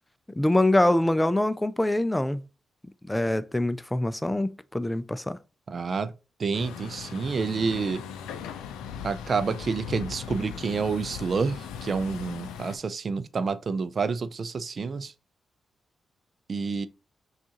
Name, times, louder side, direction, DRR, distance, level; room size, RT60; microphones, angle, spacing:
voice 1, 0.4-2.4 3.1-5.4, left 1 dB, 15° left, 0.4 m, -24 dB
voice 2, 5.7-6.1 6.4-8.0 9.0-15.1 16.5-16.9, right 5 dB, 55° right, 0.4 m, -29 dB
Truck, 6.5-12.8, left 7 dB, 85° left, 0.4 m, -38 dB
6.0 x 2.5 x 2.9 m
supercardioid pair, 45°, 0 cm